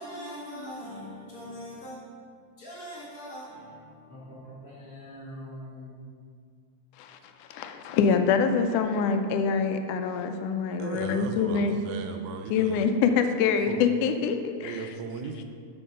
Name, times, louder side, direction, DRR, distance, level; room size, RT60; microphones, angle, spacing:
voice 1, 0.0-6.0, equal, 35° left, -6 dB, 1.6 m, -42 dB
voice 2, 7.0-11.8 12.5-14.9, left 6 dB, 85° left, 7 dB, 2.1 m, -25 dB
voice 3, 10.8-12.9 13.7-13.9 14.6-15.4, right 5 dB, 80° right, 5 dB, 1.9 m, -37 dB
7.3 x 6.8 x 5.2 m, 2.2 s
omnidirectional pair, 3.5 m